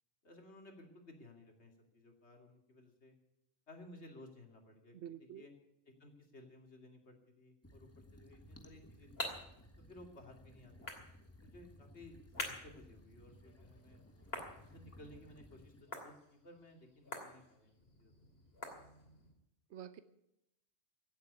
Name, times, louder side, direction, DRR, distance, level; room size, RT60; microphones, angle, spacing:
voice 1, 0.2-3.1 3.7-5.5 5.9-9.3 9.8-11.0 11.4-14.0 14.6-17.7 18.0-18.1, left 1 dB, 85° left, 3 dB, 2.9 m, -57 dB
voice 2, 4.9-5.4 19.7-20.0, right 9 dB, 90° right, 12 dB, 1.1 m, -48 dB
sound 1, 7.6-15.8, left 1 dB, 15° left, 1.4 m, -59 dB
sound 2, 8.5-19.3, left 2 dB, 65° left, 3.0 m, -49 dB
16.5 x 8.1 x 9.5 m, 0.82 s
omnidirectional pair, 1.1 m